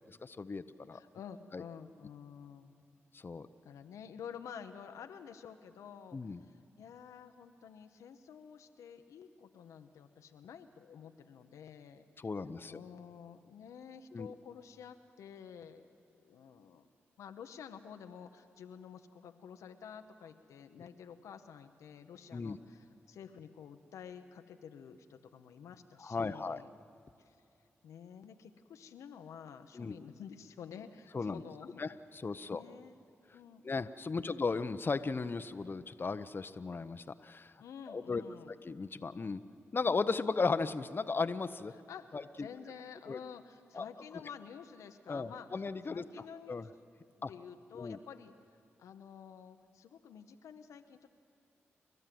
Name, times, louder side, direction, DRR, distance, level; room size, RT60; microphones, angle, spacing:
voice 1, 0.0-1.0 1.5-1.6 3.1-3.5 6.1-6.4 12.2-12.8 14.1-14.3 22.3-22.6 26.0-26.6 29.7-30.0 31.1-31.4 31.8-32.6 33.6-37.5 37.9-38.2 38.6-39.4 39.7-41.7 42.1-42.5 43.1-43.2 43.7-43.8 45.1-46.0 46.5-46.6 47.2-47.3 47.8-48.0, left 4 dB, 45° left, 11 dB, 0.7 m, -36 dB
voice 2, 0.9-2.8 3.6-12.3 12.7-15.9 16.2-16.9 17.2-26.7 27.2-27.4 27.8-31.8 32.4-33.0 33.3-33.7 34.2-34.3 37.6-38.5 41.7-46.7 47.2-48.3 48.8-51.1, left 7 dB, 85° left, 7 dB, 0.8 m, -50 dB
29.5 x 12.0 x 7.7 m, 2.5 s
supercardioid pair, 40°, 5 cm